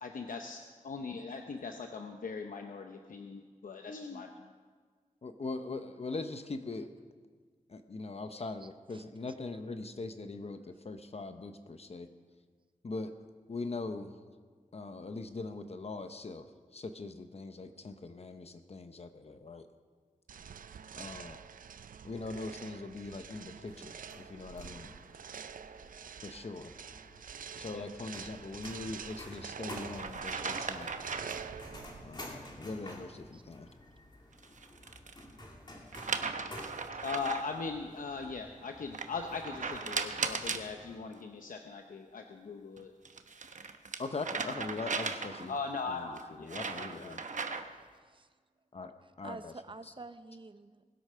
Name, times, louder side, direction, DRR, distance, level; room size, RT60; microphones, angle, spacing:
voice 1, 0.0-4.3 27.6-28.0 37.0-42.9 45.5-47.6, left 4 dB, 80° left, 4 dB, 0.8 m, -40 dB
voice 2, 3.9-4.3 5.2-6.9 7.7-12.1 12.8-13.1 13.5-14.2 14.7-16.5 16.7-19.7 21.0-21.4 22.0-25.0 26.2-26.7 27.6-30.9 32.0-33.7 44.0-45.5 45.9-47.2 48.7-48.9 49.2-49.5 49.8-49.9, left 3 dB, 50° left, 8 dB, 0.8 m, -41 dB
voice 3, 8.6-9.0 33.3-33.4 33.7-33.8 47.8-48.3 49.2-50.9, right 3 dB, 40° right, 12 dB, 0.7 m, -49 dB
sound 1, 20.3-32.2, right 7 dB, 80° right, 0.5 m, -46 dB
sound 2, 23.7-41.0, left 1 dB, 35° left, 2.3 m, -51 dB
sound 3, 28.9-29.2 30.0-31.5 34.3-35.2 35.9-37.6 38.9-40.7 42.8-45.6 46.2-47.8, right 4 dB, 65° right, 0.9 m, -37 dB
20.0 x 8.2 x 5.7 m, 1.6 s
wide cardioid pair, 80°, 14 cm